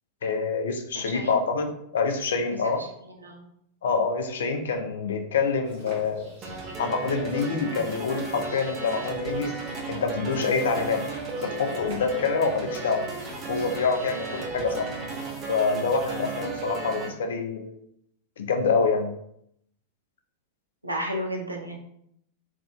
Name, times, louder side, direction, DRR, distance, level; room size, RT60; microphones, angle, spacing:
voice 1, 0.2-2.8 3.8-6.3 6.8-9.5 9.9-11.1 11.4-13.1 13.5-14.9 15.5-17.8 18.4-19.1, left 4 dB, 65° left, 5 dB, 0.4 m, -26 dB
voice 2, 0.9-1.4 2.6-2.9 3.1-3.5 20.8-21.8, equal, 85° right, 1 dB, 0.5 m, -33 dB
sound 1, 5.6-15.4, equal, 55° right, 1.3 m, -45 dB
sound 2, 6.4-17.1, right 3 dB, 30° right, 0.6 m, -35 dB
3.4 x 2.4 x 2.2 m, 0.72 s
figure-of-eight pair, 90°, 0 cm